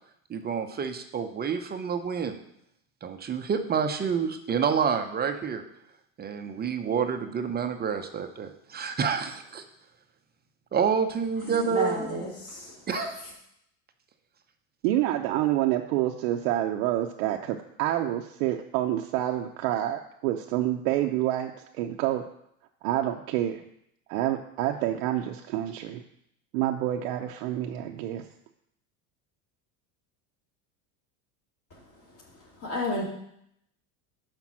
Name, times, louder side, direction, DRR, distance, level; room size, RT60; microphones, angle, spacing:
voice 1, 0.3-2.4 3.0-5.6 6.2-9.6 10.7-12.3 12.9-13.1, right 6 dB, 25° right, 7 dB, 0.5 m, -28 dB
voice 2, 11.4-13.1 31.7-31.8 32.3-33.0, left 2 dB, 45° left, -4 dB, 2.4 m, -32 dB
voice 3, 14.8-21.5 21.8-22.2 22.8-23.6 24.1-26.0 26.5-28.2, right 13 dB, 75° right, 3 dB, 0.7 m, -27 dB
5.9 x 5.2 x 6.0 m, 0.74 s
supercardioid pair, 110°, 43 cm